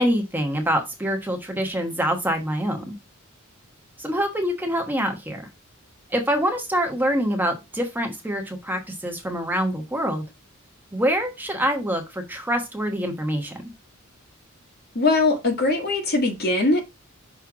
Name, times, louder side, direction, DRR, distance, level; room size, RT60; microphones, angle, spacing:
voice 1, 0.0-2.9 4.0-5.4 6.1-10.2 10.9-13.5, equal, 10° right, 1.1 m, -25 dB
voice 2, 14.9-16.8, left 2 dB, 50° left, 1.7 m, -21 dB
6.1 x 3.4 x 4.6 m
head